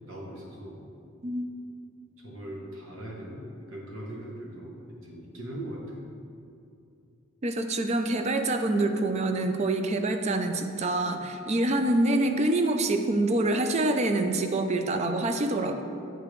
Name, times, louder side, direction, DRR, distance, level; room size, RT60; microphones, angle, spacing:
voice 1, 0.0-0.9 2.2-6.0, right 1 dB, 65° right, -3 dB, 1.0 m, -40 dB
voice 2, 7.4-15.8, right 2 dB, 30° right, 6 dB, 0.3 m, -26 dB
7.7 x 4.9 x 3.1 m, 2.6 s
head